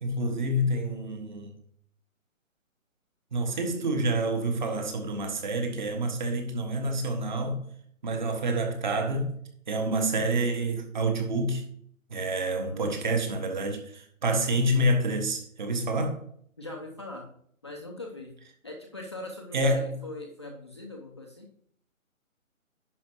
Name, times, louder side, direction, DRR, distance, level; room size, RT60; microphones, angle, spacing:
voice 1, 0.0-1.5 3.3-7.6 8.0-9.3 9.7-11.6 12.1-16.2 19.5-20.0, right 1 dB, 35° right, 1.5 m, -28 dB
voice 2, 12.6-13.0 16.6-17.3 17.6-18.3 18.6-21.5, left 2 dB, 20° left, 0.7 m, -41 dB
10.5 x 5.1 x 4.7 m
hypercardioid pair, 165°, 41 cm